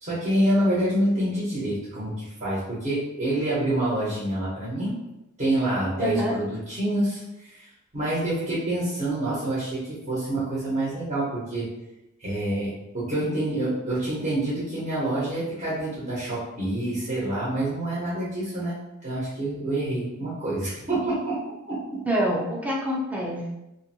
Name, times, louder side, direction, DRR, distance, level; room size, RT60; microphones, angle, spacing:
voice 1, 0.0-4.9 5.4-7.7 7.9-11.6 12.2-18.8 19.0-21.4 21.7-21.8, right 1 dB, 35° right, -10 dB, 0.9 m, -27 dB
voice 2, 6.0-6.4 21.0-21.1 22.1-23.5, equal, 5° right, -3 dB, 0.4 m, -26 dB
2.6 x 2.5 x 2.7 m, 0.91 s
head